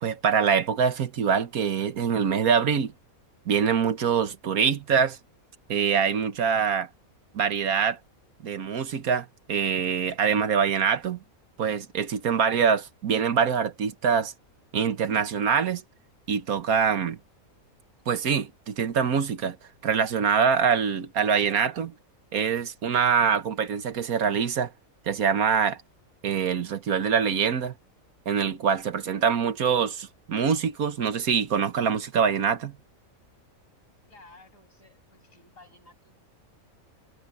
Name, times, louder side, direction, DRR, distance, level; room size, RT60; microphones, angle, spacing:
voice 1, 0.0-2.9 3.5-5.2 5.7-6.9 7.3-8.0 8.4-11.2 11.6-14.3 14.7-15.8 16.3-17.2 18.1-19.6 19.8-21.9 22.3-24.7 25.1-25.8 26.2-27.7 28.2-32.8, right 7 dB, 85° right, 1.7 m, -24 dB
voice 2, 34.1-36.2, left 2 dB, 65° left, 7.3 m, -54 dB
omnidirectional pair, 1.5 m